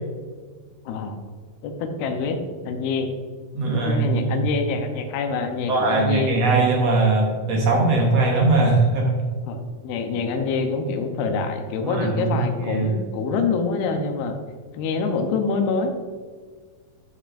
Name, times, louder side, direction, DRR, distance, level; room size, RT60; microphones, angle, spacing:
voice 1, 0.9-1.2 1.6-2.4 2.6-3.1 3.7-6.7 9.5-14.4 14.7-15.9, left 4 dB, 90° left, 5 dB, 2.8 m, -26 dB
voice 2, 3.5-4.4 5.7-9.1 11.8-12.9, right 3 dB, 65° right, -1 dB, 1.7 m, -20 dB
12.5 x 6.5 x 2.5 m, 1.5 s
omnidirectional pair, 4.3 m